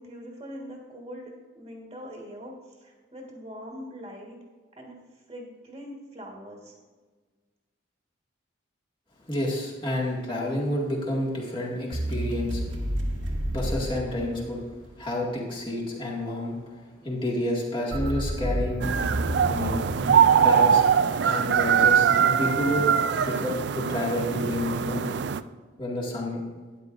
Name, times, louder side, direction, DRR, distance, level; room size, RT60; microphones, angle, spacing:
voice 1, 0.0-4.4 4.8-5.0 5.3-6.7, equal, 25° right, -1 dB, 1.5 m, -42 dB
voice 2, 9.3-12.6 13.5-14.6 15.0-18.9 19.5-19.8 20.4-20.8 21.2-22.8 23.2-25.1 25.8-26.4, left 1 dB, 25° left, -3 dB, 2.0 m, -29 dB
sound 1, 11.9-14.9 17.9-21.3, equal, 80° right, 1.4 m, -31 dB
sound 2, 18.8-25.4, right 7 dB, 60° right, 0.3 m, -22 dB
12.5 x 9.7 x 2.6 m, 1.4 s
head